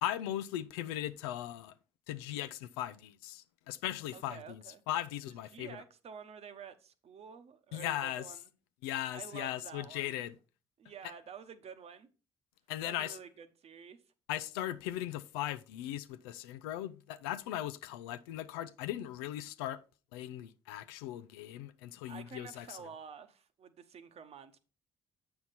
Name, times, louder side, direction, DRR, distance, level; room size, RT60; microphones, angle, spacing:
voice 1, 0.0-1.7 2.1-5.8 7.7-8.2 8.8-10.4 12.7-13.2 14.3-19.8 20.1-22.8, left 13 dB, 90° left, 0.4 m, -38 dB
voice 2, 4.1-4.8 5.3-8.5 9.1-10.2 10.8-12.1 12.8-14.0 22.0-24.6, right 7 dB, 55° right, 1.0 m, -50 dB
7.7 x 5.8 x 4.1 m
hypercardioid pair, 55°, 13 cm